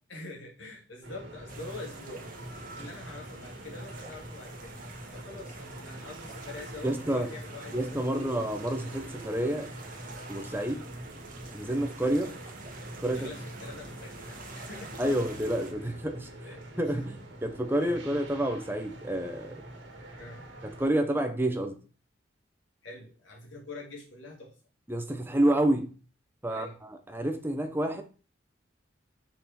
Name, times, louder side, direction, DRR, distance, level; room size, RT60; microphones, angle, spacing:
voice 1, 0.1-2.3 2.8-4.7 5.1-8.3 13.1-15.0 15.8-15.9 16.4-17.0 17.8-18.0 20.2-20.4 22.8-24.6 26.5-26.8, left 2 dB, 75° left, -2 dB, 2.8 m, -45 dB
sound 1, 1.0-20.9, right 1 dB, 70° right, 2.3 m, -45 dB
sound 2, 1.5-15.7, right 3 dB, 45° right, 1.7 m, -48 dB
voice 2, 6.8-7.3 7.7-9.7 10.3-10.9 11.5-12.3 13.0-13.3 15.0-16.3 16.8-19.6 20.6-21.8 24.9-26.0 26.4-26.7 27.1-28.0, right 1 dB, 10° right, 6 dB, 1.0 m, -29 dB
6.2 x 6.1 x 4.4 m, 0.36 s
head